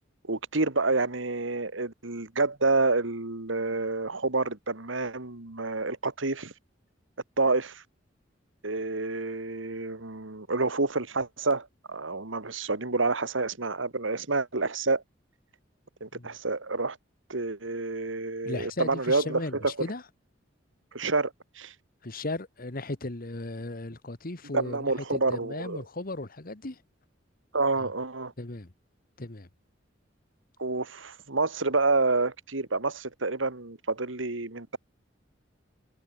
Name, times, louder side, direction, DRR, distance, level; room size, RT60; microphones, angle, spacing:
voice 1, 0.3-6.5 7.4-7.8 8.6-15.0 16.0-17.0 17.3-19.7 20.9-21.3 21.6-21.7 24.5-25.8 27.5-28.3 30.6-34.8, right 3 dB, 80° right, 2.2 m, -28 dB
voice 2, 18.4-20.0 22.0-26.8 27.8-27.9 28.4-28.7 29.2-29.5, left 2 dB, 50° left, 1.6 m, -36 dB
head